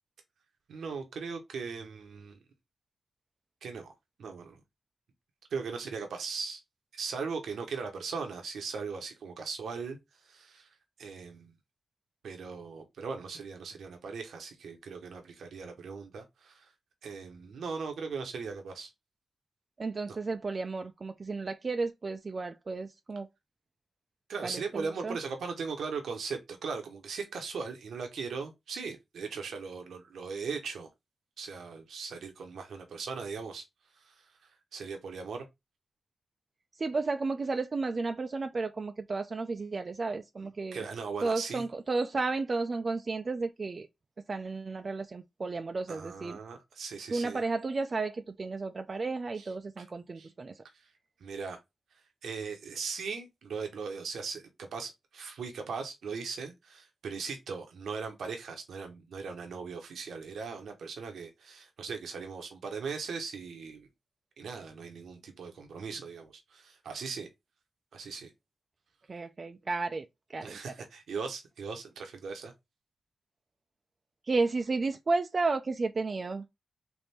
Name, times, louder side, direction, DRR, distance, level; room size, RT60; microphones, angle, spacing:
voice 1, 0.7-2.4 3.6-3.9 4.2-4.6 5.5-6.6 6.9-10.0 10.2-10.7 11.0-11.5 12.2-16.7 17.0-18.9 20.1-20.2 24.3-30.9 31.4-33.6 33.9-34.3 34.7-35.4 40.7-41.6 45.9-47.4 49.4-49.5 49.8-49.9 50.2-50.3 50.7-50.9 51.2-51.6 52.2-63.9 64.4-67.3 67.9-68.3 70.4-72.5, right 5 dB, 90° right, 0.8 m, -39 dB
voice 2, 19.8-23.3 24.4-25.2 36.8-40.8 41.2-43.9 44.3-46.4 47.1-50.6 69.1-70.1 70.3-70.7 74.2-76.5, right 3 dB, 50° right, 0.4 m, -33 dB
3.5 x 2.6 x 4.2 m
cardioid pair, 55°, 0 cm